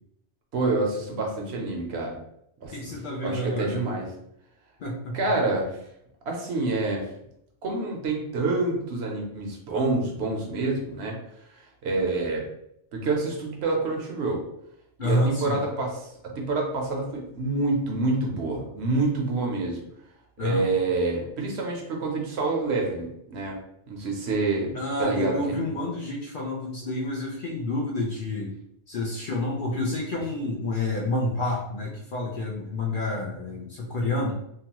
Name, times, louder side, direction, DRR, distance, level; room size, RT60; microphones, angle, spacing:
voice 1, 0.5-2.2 2.6-2.7 3.2-4.1 5.1-5.7 6.3-7.0 7.6-11.2 11.8-12.4 12.9-14.4 15.0-19.8 20.4-23.6 23.9-25.7, right 3 dB, 65° right, 0 dB, 0.9 m, -27 dB
voice 2, 2.7-3.8 4.8-5.2 15.0-15.6 20.4-20.7 24.7-28.5 28.9-34.3, left 2 dB, 55° left, -2 dB, 0.6 m, -29 dB
2.9 x 2.3 x 2.9 m, 0.76 s
omnidirectional pair, 1.2 m